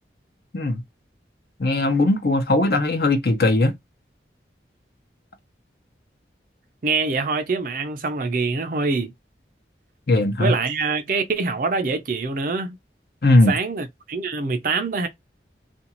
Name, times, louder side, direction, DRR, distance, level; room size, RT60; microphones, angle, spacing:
voice 1, 1.6-3.7 10.1-10.5 13.2-13.5, left 2 dB, 55° left, 0.7 m, -19 dB
voice 2, 6.8-9.1 10.4-12.8 13.5-15.1, right 4 dB, 50° right, 0.5 m, -24 dB
2.5 x 2.3 x 2.9 m
head